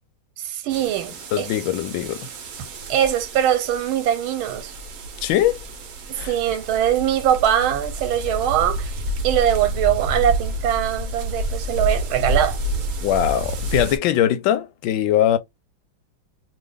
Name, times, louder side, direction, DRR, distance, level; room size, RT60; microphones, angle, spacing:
voice 1, 0.4-1.5 2.9-4.7 6.1-12.6, right 10 dB, 90° right, 1.5 m, -22 dB
sound 1, 0.7-14.0, right 1 dB, 60° right, 0.8 m, -29 dB
voice 2, 1.3-2.3 5.2-5.6 6.2-6.3 13.0-15.4, left 11 dB, 75° left, 1.2 m, -21 dB
3.0 x 2.6 x 3.3 m
omnidirectional pair, 2.2 m